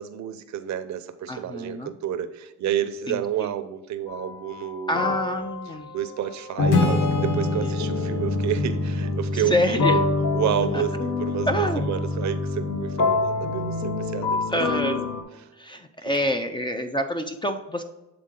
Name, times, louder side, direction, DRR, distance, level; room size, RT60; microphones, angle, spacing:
voice 1, 0.0-5.2 5.9-10.0 10.3-14.5 14.8-15.1, right 10 dB, 65° right, 10 dB, 0.7 m, -30 dB
voice 2, 1.3-1.9 3.1-3.5 4.9-5.9 9.3-10.0 10.7-10.8 11.5-11.9 14.5-15.1 15.6-17.8, left 1 dB, 15° left, 6 dB, 0.5 m, -27 dB
sound 1, 4.1-4.3 4.9-15.2, left 3 dB, 60° left, 1.2 m, -26 dB
Acoustic guitar / Strum, 6.7-10.3, left 3 dB, 80° left, 1.1 m, -29 dB
7.7 x 3.7 x 3.7 m, 1.0 s
cardioid pair, 90°, 30 cm